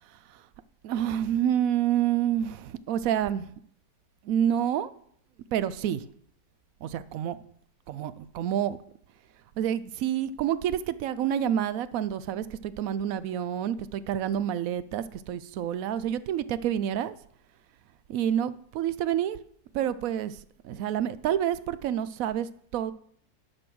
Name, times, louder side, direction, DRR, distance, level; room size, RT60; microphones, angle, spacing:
voice 1, 0.8-3.5 4.2-4.9 5.5-6.0 6.8-7.4 7.9-8.8 9.6-17.2 18.1-19.4 19.7-20.4 20.6-22.9, right 10 dB, 70° right, 0.9 m, -28 dB
10.5 x 6.2 x 6.1 m
omnidirectional pair, 1.7 m